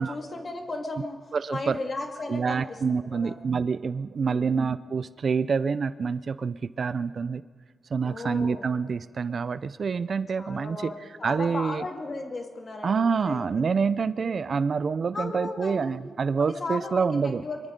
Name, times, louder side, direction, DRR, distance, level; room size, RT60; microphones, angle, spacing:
voice 1, 0.0-1.2 1.5-2.8 3.1-3.4 4.2-4.6 8.0-8.7 10.4-13.6 14.2-14.4 15.1-16.0 16.4-17.6, left 2 dB, 40° left, 3 dB, 2.4 m, -35 dB
voice 2, 1.3-1.8 2.3-7.4 7.9-10.9 11.2-11.8 12.8-17.4, right 5 dB, 50° right, 16 dB, 0.5 m, -27 dB
24.0 x 22.5 x 5.3 m, 1.5 s
wide cardioid pair, 110°, 0 cm